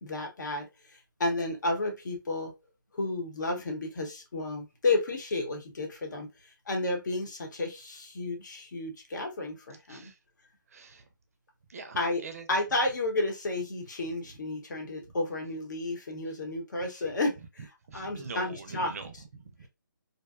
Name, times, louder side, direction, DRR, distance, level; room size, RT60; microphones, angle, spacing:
voice 1, 0.0-2.5 2.9-10.1 12.0-12.2 12.5-17.7 17.9-18.9, left 2 dB, 60° left, 0.9 m, -32 dB
voice 2, 10.7-11.1 11.7-12.5 15.1-15.2 16.9-17.1 17.9-19.7, right 4 dB, 45° right, 0.5 m, -44 dB
2.6 x 2.2 x 2.3 m
figure-of-eight pair, 155°, 11 cm